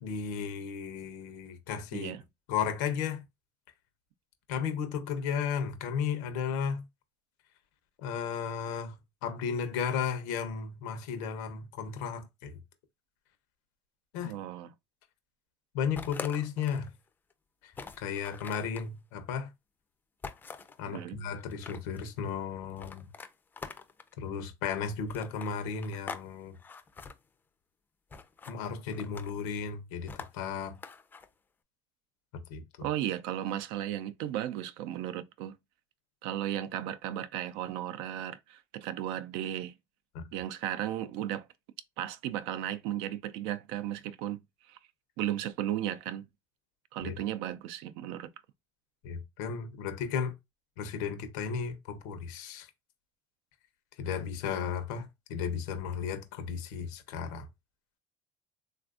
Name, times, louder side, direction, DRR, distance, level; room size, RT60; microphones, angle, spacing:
voice 1, 0.0-2.1 2.5-3.2 4.5-6.8 8.0-12.5 14.1-14.3 15.7-16.9 17.6-17.7 18.0-19.5 20.8-23.1 24.2-26.6 28.5-30.8 32.5-32.9 40.1-40.2 47.0-47.2 49.0-50.3 50.8-52.7 54.0-57.5, left 7 dB, 85° left, 0.8 m, -34 dB
voice 2, 1.9-2.2 14.2-14.7 20.9-21.2 32.8-35.6 36.2-39.7 40.3-41.5 42.0-44.4 44.7-44.8 45.2-46.3 46.9-48.3, right 12 dB, 75° right, 0.4 m, -35 dB
sound 1, 16.0-16.9 17.3-17.4 17.7-18.9 20.2-20.8 21.4-22.1 22.8-24.1 25.1-26.3 26.5-27.1 28.1-28.6 28.9-29.4 30.1-31.3, left 5 dB, 20° left, 0.4 m, -44 dB
3.3 x 2.4 x 2.4 m
supercardioid pair, 115°, 9 cm